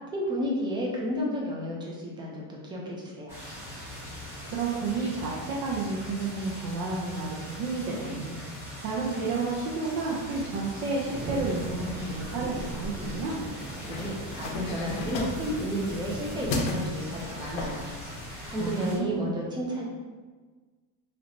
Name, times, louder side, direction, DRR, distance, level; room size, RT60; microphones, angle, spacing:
voice 1, 0.1-3.4 13.9-17.9 18.4-19.8, equal, 10° right, -2 dB, 0.4 m, -32 dB
sound 1, 3.3-19.0, left 1 dB, 5° left, 1.0 m, -41 dB
voice 2, 4.5-8.3 8.8-13.4 18.6-19.5, right 3 dB, 60° right, -6 dB, 0.7 m, -31 dB
Thunderstorm / Rain, 11.1-16.6, right 2 dB, 85° right, 0.9 m, -38 dB
sound 2, 13.6-18.7, left 2 dB, 70° left, 0.7 m, -36 dB
3.1 x 2.9 x 2.7 m, 1.4 s
cardioid pair, 155°, 38 cm